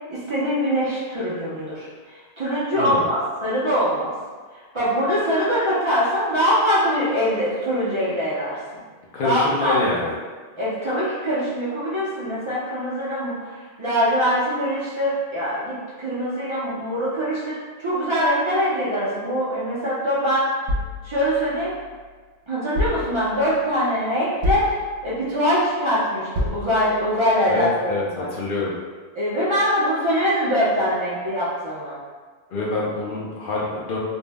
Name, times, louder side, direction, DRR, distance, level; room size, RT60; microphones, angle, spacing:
voice 1, 0.1-4.1 4.5-8.8 9.2-9.9 10.6-20.6 21.0-21.7 22.5-28.3 29.2-32.0, equal, 35° right, -10 dB, 0.5 m, -23 dB
voice 2, 2.7-3.1 9.1-10.1 27.5-28.7 32.5-34.0, left 2 dB, 60° left, -5 dB, 0.7 m, -26 dB
sound 1, 20.7-22.1 22.8-23.6 24.4-25.3 26.4-27.2, left 1 dB, 85° right, 0.9 m, -29 dB
2.6 x 2.0 x 3.3 m, 1.5 s
omnidirectional pair, 1.1 m